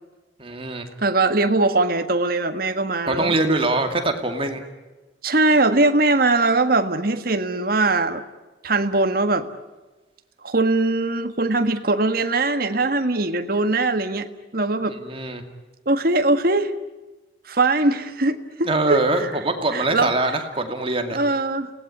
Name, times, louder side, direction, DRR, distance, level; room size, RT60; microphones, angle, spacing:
voice 1, 0.4-0.9 3.1-4.6 14.9-15.4 18.6-21.2, right 2 dB, 30° right, 5 dB, 2.4 m, -23 dB
voice 2, 1.0-3.3 5.2-8.2 8.6-9.5 10.4-14.3 14.5-15.0 15.8-16.7 17.5-19.0 19.7-20.1 21.1-21.7, right 2 dB, 55° right, 8 dB, 1.6 m, -21 dB
30.0 x 18.5 x 9.9 m, 1.2 s
head